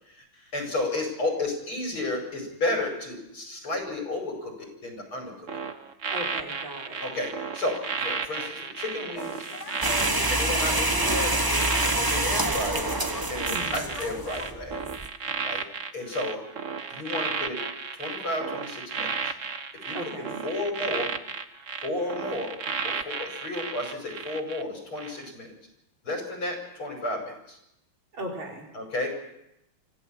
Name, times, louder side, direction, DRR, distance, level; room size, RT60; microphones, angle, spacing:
voice 1, 0.5-5.5 7.0-9.5 10.1-14.8 15.4-15.6 15.9-16.4 16.9-17.6 18.0-19.3 19.9-21.1 21.8-22.5 22.8-25.5 26.0-27.6 28.7-29.1, left 2 dB, 85° left, 2 dB, 6.4 m, -32 dB
sound 1, 5.5-24.6 25.0-25.2, right 5 dB, 45° right, 1.2 m, -33 dB
voice 2, 6.1-7.0 13.5-13.9 19.9-20.4 28.1-28.7, right 1 dB, 70° right, -1 dB, 5.1 m, -37 dB
sound 2, 9.1-14.5, left 4 dB, 35° left, 1.9 m, -42 dB
sound 3, 9.8-15.1, right 2 dB, 20° right, 0.6 m, -27 dB
25.5 x 15.5 x 7.3 m, 0.85 s
omnidirectional pair, 2.3 m